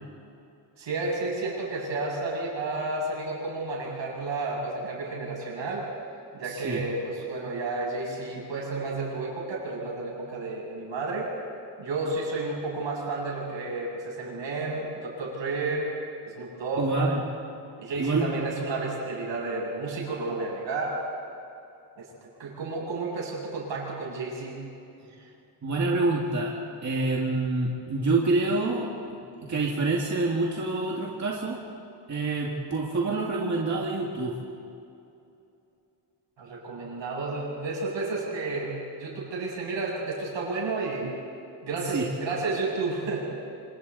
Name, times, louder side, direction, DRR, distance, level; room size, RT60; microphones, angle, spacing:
voice 1, 0.8-5.9 6.3-11.3 11.8-15.9 16.3-17.1 17.8-21.0 22.0-22.1 22.4-24.6 36.4-41.1 41.6-43.2, right 3 dB, 80° right, -3 dB, 7.6 m, -31 dB
voice 2, 6.4-6.8 16.8-17.2 18.0-18.5 25.6-26.5 26.8-29.2 29.4-31.6 32.1-34.4 41.9-42.1, right 3 dB, 40° right, -2 dB, 2.2 m, -27 dB
28.0 x 27.0 x 4.2 m, 2.7 s
wide cardioid pair, 165°, 44 cm